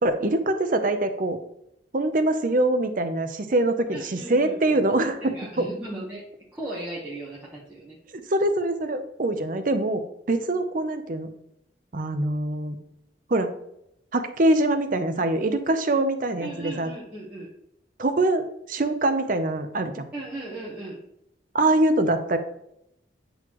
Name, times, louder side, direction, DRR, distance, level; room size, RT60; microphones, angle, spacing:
voice 1, 0.0-1.4 1.9-5.7 8.3-11.3 11.9-12.8 13.3-13.5 14.1-16.9 18.0-20.1 21.5-22.4, right 2 dB, 45° right, 8 dB, 0.6 m, -24 dB
voice 2, 3.9-4.5 5.2-6.2 6.5-8.0 16.4-17.5 20.1-21.0, right 2 dB, 10° right, -7 dB, 1.1 m, -36 dB
9.1 x 4.0 x 3.0 m, 0.78 s
head